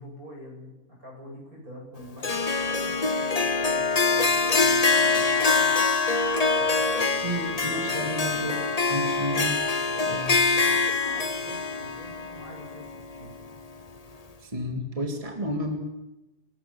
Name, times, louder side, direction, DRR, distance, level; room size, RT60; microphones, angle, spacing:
voice 1, 0.0-5.8 6.5-8.6 9.8-10.1 10.5-13.3, equal, 65° right, 0 dB, 8.7 m, -45 dB
Harp, 2.2-13.5, left 4 dB, 30° left, 1.1 m, -24 dB
voice 2, 7.2-8.6 8.9-9.6 10.1-10.4 14.4-15.8, equal, 20° right, 3 dB, 2.6 m, -31 dB
28.0 x 19.5 x 7.2 m, 1.0 s
omnidirectional pair, 1.6 m